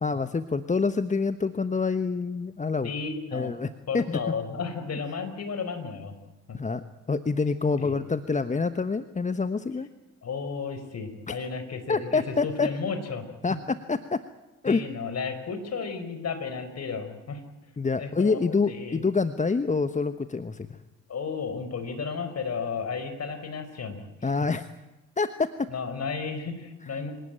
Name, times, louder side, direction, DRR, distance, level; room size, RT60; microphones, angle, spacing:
voice 1, 0.0-2.9 3.3-4.2 6.5-9.9 11.3-11.4 11.9-12.7 13.4-13.6 13.9-14.2 14.6-14.8 17.8-20.7 24.2-24.6 25.2-25.7 26.9-27.0, left 4 dB, 20° left, 12 dB, 1.2 m, -26 dB
voice 2, 2.8-3.5 3.9-6.1 6.5-6.6 7.8-7.9 10.2-13.2 14.7-17.4 18.0-18.4 18.7-19.0 21.1-24.3 25.7-27.1, left 5 dB, 45° left, 9 dB, 4.8 m, -33 dB
25.5 x 18.5 x 9.1 m, 1.0 s
hypercardioid pair, 55°, 37 cm